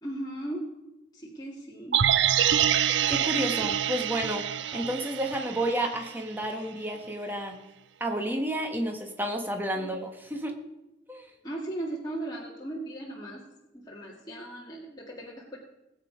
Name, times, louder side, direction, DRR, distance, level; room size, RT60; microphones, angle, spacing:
voice 1, 0.0-0.6 1.1-2.0 9.7-9.9 11.4-13.4 13.7-15.6, right 1 dB, 20° left, -4 dB, 2.0 m, -37 dB
sound 1, 1.9-6.1 6.4-6.5, right 10 dB, 75° right, 0.5 m, -26 dB
voice 2, 3.1-7.6 8.0-10.6 11.1-11.3, right 1 dB, 10° right, 3 dB, 1.4 m, -31 dB
19.0 x 8.4 x 5.1 m, 0.97 s
head